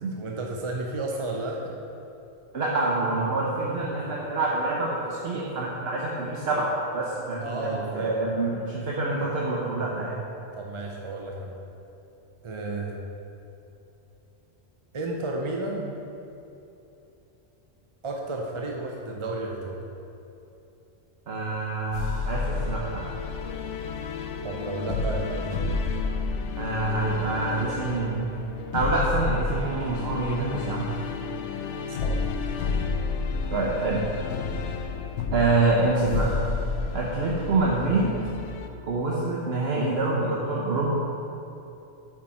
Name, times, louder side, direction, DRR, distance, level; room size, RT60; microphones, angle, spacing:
voice 1, 0.0-1.7 7.4-8.2 10.5-11.6 12.4-13.0 14.9-16.0 18.0-19.8 24.4-25.6 31.9-32.2, right 2 dB, 35° right, 0 dB, 0.5 m, -32 dB
voice 2, 2.5-10.2 21.3-23.1 26.6-28.3 28.7-30.9 33.5-34.0 35.3-36.3 36.9-38.1 38.8-40.9, right 3 dB, 60° right, -4 dB, 1.1 m, -26 dB
sound 1, 21.9-38.7, left 4 dB, 75° left, 0.9 m, -31 dB
8.8 x 6.1 x 4.3 m, 2.9 s
omnidirectional pair, 1.2 m